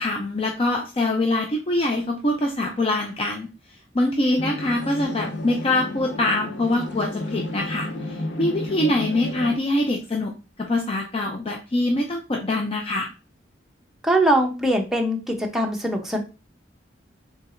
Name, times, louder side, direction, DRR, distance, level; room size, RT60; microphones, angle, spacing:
voice 1, 0.0-3.5 3.9-7.9 8.4-10.3 10.6-13.1, left 1 dB, 30° left, 1 dB, 0.6 m, -24 dB
sound 1, 4.4-9.6, left 2 dB, 75° left, 0.8 m, -32 dB
voice 2, 14.0-16.2, right 1 dB, ahead, 0 dB, 0.8 m, -22 dB
4.6 x 3.9 x 2.6 m, 0.31 s
head